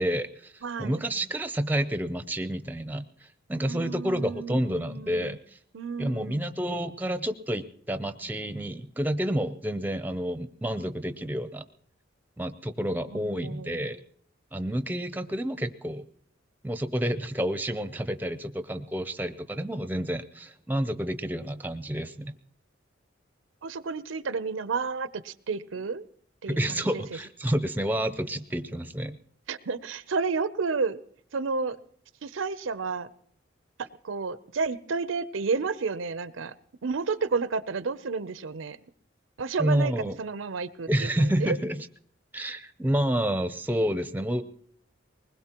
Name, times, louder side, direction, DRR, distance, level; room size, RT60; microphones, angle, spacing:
voice 1, 0.0-0.5 0.8-3.1 3.5-5.4 6.0-11.7 12.4-14.0 14.5-16.0 16.6-22.3 26.5-29.2 39.6-40.2 40.9-41.8 42.3-44.4, right 1 dB, 10° right, 10 dB, 0.5 m, -29 dB
voice 2, 0.6-1.0 3.6-5.4 5.7-6.5 13.1-13.9 23.6-26.0 26.4-27.0 29.5-31.0 31.3-31.8 32.2-33.1 33.8-36.5 36.8-38.8 39.4-41.6, right 4 dB, 85° right, 15 dB, 0.6 m, -31 dB
21.0 x 20.0 x 2.9 m, 0.63 s
head